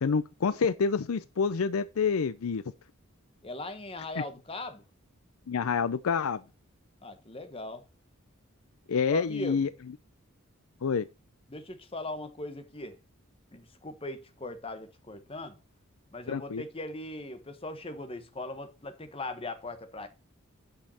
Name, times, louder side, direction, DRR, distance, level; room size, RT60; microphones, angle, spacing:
voice 1, 0.0-2.6 4.2-4.3 5.5-6.4 8.9-9.7 10.8-11.1 16.3-16.6, left 5 dB, 75° left, 0.5 m, -27 dB
voice 2, 3.4-4.8 7.0-7.8 9.1-9.7 11.5-13.0 13.5-15.6 16.1-20.1, left 2 dB, 25° left, 1.2 m, -39 dB
8.9 x 5.5 x 4.2 m
head